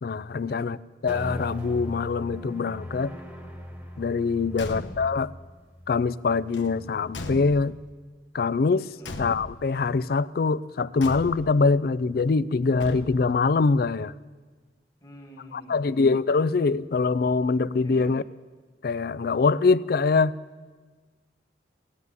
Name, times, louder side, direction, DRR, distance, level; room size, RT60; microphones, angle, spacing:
voice 1, 0.0-0.8 1.0-3.2 4.0-5.3 5.9-7.8 8.3-8.9 9.2-14.1 15.5-18.2 18.8-20.4, left 4 dB, 55° left, 0.4 m, -24 dB
sound 1, 1.1-7.6, equal, 10° right, 1.4 m, -40 dB
voice 2, 4.4-4.9 9.0-9.2 15.0-16.2 17.8-18.1, equal, 20° left, 2.2 m, -48 dB
Car / Truck / Slam, 4.5-5.2 6.5-7.9 9.0-9.8 11.0-11.7 12.8-13.4, left 2 dB, 80° left, 1.1 m, -38 dB
16.0 x 9.4 x 9.6 m
head